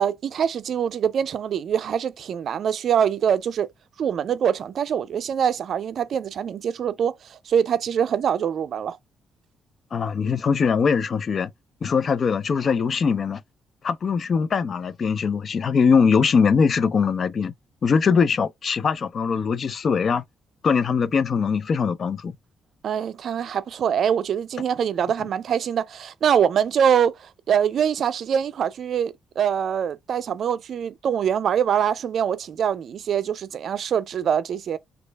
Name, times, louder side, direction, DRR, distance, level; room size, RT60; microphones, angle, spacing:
voice 1, 0.0-3.7 4.0-9.0 22.8-34.8, right 8 dB, 65° right, 0.4 m, -24 dB
voice 2, 9.9-11.5 11.8-13.4 13.8-17.5 17.8-20.2 20.6-22.3, left 5 dB, 55° left, 0.4 m, -21 dB
3.1 x 2.4 x 3.3 m
supercardioid pair, 60°, 0 cm